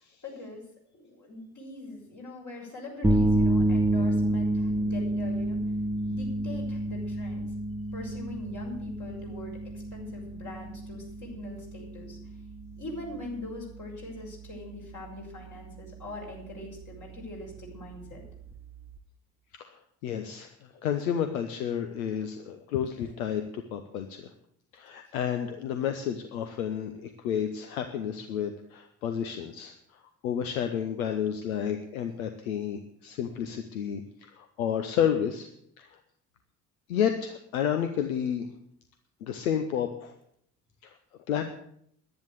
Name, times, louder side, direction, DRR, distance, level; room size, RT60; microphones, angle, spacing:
voice 1, 0.2-0.6 0.9-5.6 6.0-7.5 7.9-12.2 12.8-18.2 20.8-20.9 23.0-23.1, left 2 dB, 45° left, -2 dB, 6.3 m, -42 dB
sound 1, 3.0-19.0, right 1 dB, 5° right, 1.2 m, -30 dB
voice 2, 20.0-20.5 20.8-24.3 24.7-29.7 30.2-35.5 35.8-35.9 36.9-38.5 39.2-40.1 40.8-40.9 41.3-41.5, left 8 dB, 75° left, 7 dB, 0.9 m, -31 dB
11.0 x 10.5 x 8.1 m, 0.69 s
figure-of-eight pair, 40°, 42 cm